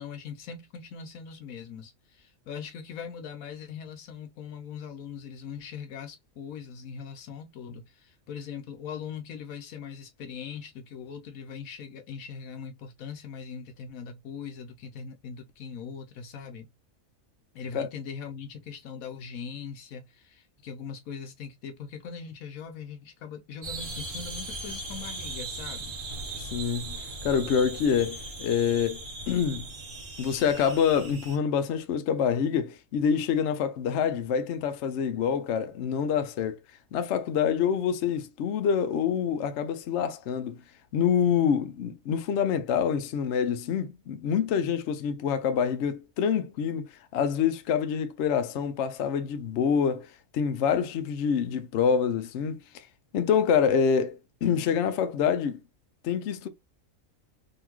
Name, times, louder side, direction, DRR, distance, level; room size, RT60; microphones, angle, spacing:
voice 1, 0.0-16.7 17.5-25.9, left 6 dB, 85° left, 1.2 m, -41 dB
sound 1, 23.6-31.4, right 2 dB, 65° right, 1.7 m, -38 dB
voice 2, 26.4-29.7 30.2-36.6 36.9-40.6 40.9-52.9 53.1-55.6 56.0-56.5, left 7 dB, 65° left, 0.8 m, -26 dB
3.8 x 2.8 x 3.0 m
omnidirectional pair, 1.4 m